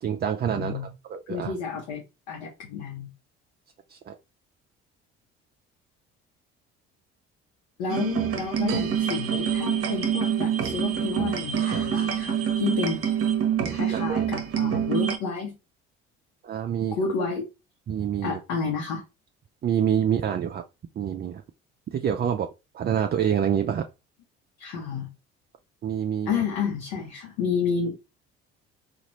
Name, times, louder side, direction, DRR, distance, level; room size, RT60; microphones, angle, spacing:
voice 1, 0.0-1.5 3.9-4.2 13.9-14.8 16.4-17.0 17.9-18.4 19.6-20.6 21.0-21.4 21.9-22.5 22.7-23.8 25.8-26.4, right 8 dB, 35° right, 0.5 m, -27 dB
voice 2, 0.5-0.9 1.3-3.1 7.8-13.0 13.6-15.6 16.9-17.5 18.2-19.0 24.6-25.1 26.3-28.0, left 5 dB, 75° left, 1.0 m, -30 dB
sound 1, 7.9-15.2, right 8 dB, 50° right, 0.8 m, -26 dB
3.9 x 2.5 x 3.0 m
hypercardioid pair, 60°, 30 cm